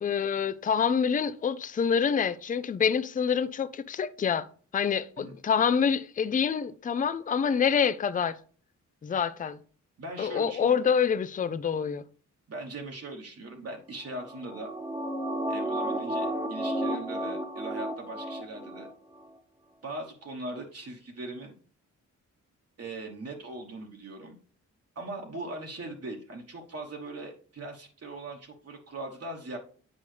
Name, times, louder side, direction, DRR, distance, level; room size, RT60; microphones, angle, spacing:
voice 1, 0.0-4.5 4.7-8.4 9.0-9.6 10.2-12.0, left 7 dB, 25° left, 0.4 m, -26 dB
voice 2, 10.0-10.8 12.5-14.7 15.5-18.9 19.8-21.5 22.8-24.4 24.9-29.6, right 2 dB, 50° right, 1.2 m, -40 dB
sound 1, 14.1-18.9 19.2-19.3, right 1 dB, 10° right, 1.0 m, -32 dB
8.5 x 5.3 x 3.3 m
cardioid pair, 90°, 31 cm